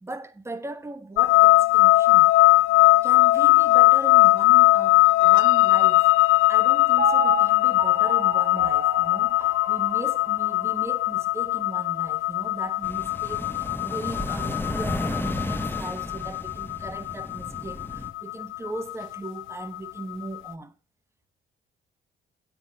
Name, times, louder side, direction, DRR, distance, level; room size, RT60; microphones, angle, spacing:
voice 1, 0.0-2.3 3.0-6.1 6.5-20.7, right 2 dB, 15° right, 1.2 m, -38 dB
sound 1, 1.2-20.2, left 19 dB, 85° left, 0.4 m, -20 dB
Piano, 7.0-11.1 11.6-11.7, right 3 dB, 30° right, 3.4 m, -33 dB
sound 2, 12.8-18.1, left 1 dB, 10° left, 1.1 m, -33 dB
8.9 x 6.2 x 6.3 m
cardioid pair, 90°, 20 cm